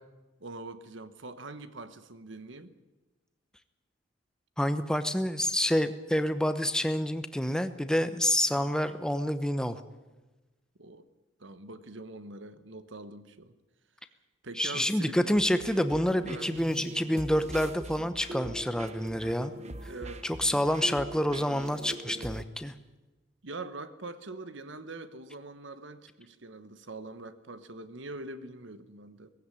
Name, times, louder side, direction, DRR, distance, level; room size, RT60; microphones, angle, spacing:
voice 1, 0.4-2.7 10.8-11.1 11.4-13.5 14.4-15.4 16.3-16.5 19.8-20.2 23.4-29.3, right 2 dB, 60° right, 12 dB, 1.2 m, -43 dB
voice 2, 4.6-9.8 14.6-19.5 19.8-19.9 20.2-22.7, equal, 5° left, 10 dB, 0.9 m, -28 dB
sound 1, 15.3-22.4, right 1 dB, 30° right, 1.1 m, -41 dB
18.0 x 16.0 x 10.0 m, 1.2 s
head